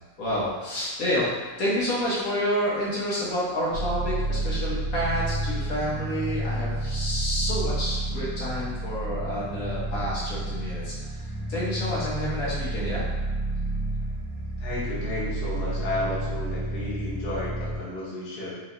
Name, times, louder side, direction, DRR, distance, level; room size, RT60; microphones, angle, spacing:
voice 1, 0.2-10.9 11.5-13.0 16.0-16.1, equal, 65° left, -7 dB, 1.5 m, -29 dB
sound 1, 3.7-17.8, right 2 dB, 85° right, 1.2 m, -30 dB
voice 2, 14.6-18.5, left 2 dB, 45° left, -8 dB, 1.1 m, -32 dB
4.7 x 3.1 x 2.6 m, 1.3 s
omnidirectional pair, 1.6 m